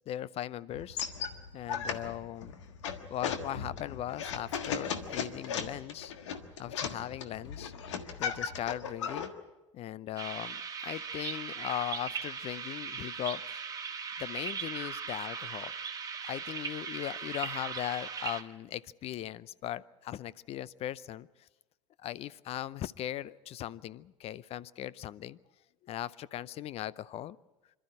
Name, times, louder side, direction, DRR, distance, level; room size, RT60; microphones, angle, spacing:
voice 1, 0.1-1.0 1.5-2.6 3.1-6.1 6.6-7.7 8.2-9.3 9.7-13.6 14.2-15.7 16.2-21.3 22.0-25.4 25.8-27.4, left 12 dB, 40° left, 21 dB, 0.6 m, -38 dB
sound 1, 0.7-9.3, left 7 dB, 75° left, 1.5 m, -37 dB
sound 2, 10.2-18.4, right 6 dB, 25° right, 1.8 m, -39 dB
26.5 x 12.5 x 9.6 m, 1.1 s
figure-of-eight pair, 75°, 16 cm